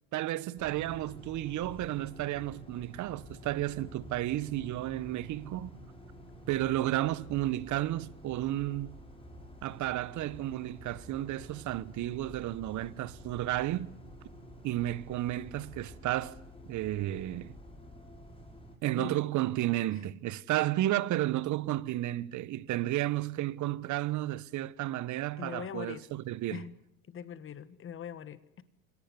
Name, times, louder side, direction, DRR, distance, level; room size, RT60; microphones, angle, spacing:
voice 1, 0.1-5.7 6.5-8.9 9.6-13.9 14.6-16.4 16.7-17.6 18.8-26.6, right 15 dB, 45° right, 1.2 m, -32 dB
sound 1, 0.6-18.8, equal, 10° left, 6.8 m, -50 dB
voice 2, 25.4-26.1 26.5-26.7 27.1-28.6, left 8 dB, 30° left, 1.6 m, -42 dB
25.5 x 18.5 x 9.8 m
hypercardioid pair, 90°, 42 cm